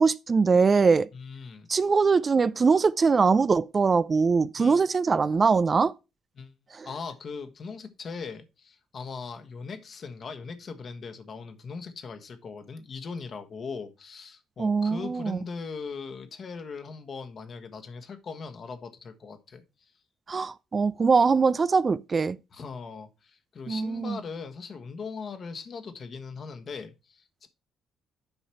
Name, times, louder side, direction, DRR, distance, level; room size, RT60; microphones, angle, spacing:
voice 1, 0.0-1.1 1.7-5.9 6.7-6.9 14.6-15.4 20.3-22.4 23.7-24.2, right 4 dB, 35° right, 0.4 m, -22 dB
voice 2, 1.1-1.7 4.6-4.8 6.4-6.5 6.8-19.6 22.5-27.5, left 5 dB, 45° left, 1.4 m, -39 dB
8.0 x 5.6 x 4.5 m
hypercardioid pair, 45°, 0 cm